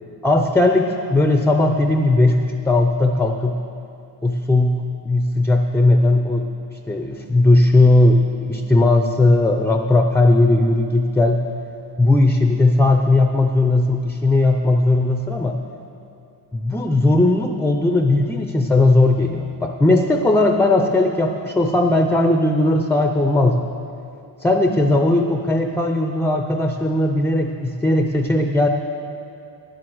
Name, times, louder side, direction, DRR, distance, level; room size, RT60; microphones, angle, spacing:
voice 1, 0.2-3.6 4.2-6.5 6.9-11.5 12.0-15.6 16.5-23.7 24.4-28.7, left 2 dB, 5° left, 4 dB, 0.4 m, -17 dB
10.0 x 7.8 x 7.6 m, 2.5 s
cardioid pair, 140°, 43 cm